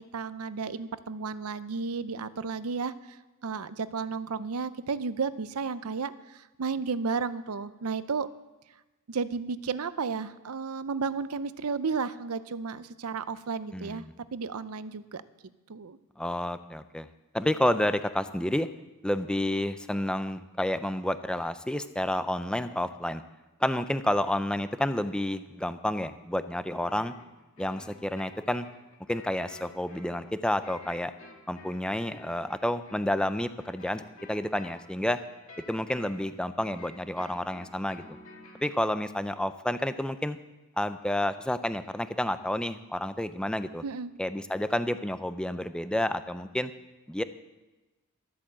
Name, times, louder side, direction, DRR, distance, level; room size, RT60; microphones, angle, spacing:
voice 1, 0.0-3.2 3.4-8.3 9.1-14.0 14.3-15.2 15.7-16.0 43.8-44.1, right 5 dB, 75° right, 14 dB, 0.6 m, -33 dB
voice 2, 13.7-14.1 16.2-17.1 17.3-18.7 19.0-23.2 23.6-27.1 27.6-28.7 29.1-31.1 31.5-34.0 34.3-35.2 35.7-38.0 38.6-40.4 40.8-43.8 44.2-46.7 47.1-47.2, left 1 dB, 5° left, 11 dB, 0.5 m, -30 dB
sound 1, 26.8-38.8, left 3 dB, 65° left, 2.3 m, -51 dB
13.0 x 8.5 x 7.6 m, 1.1 s
head